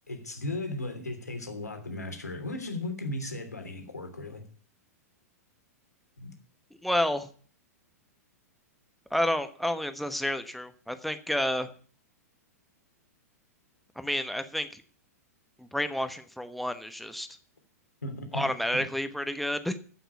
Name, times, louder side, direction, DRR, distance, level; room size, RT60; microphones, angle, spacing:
voice 1, 0.1-4.4 6.2-6.3 18.0-18.6, left 2 dB, 80° left, 3.1 m, -36 dB
voice 2, 6.8-7.3 9.1-11.7 14.0-14.8 15.6-17.3 18.3-19.8, left 1 dB, ahead, 1.1 m, -30 dB
15.0 x 6.1 x 8.2 m
figure-of-eight pair, 105°, 9 cm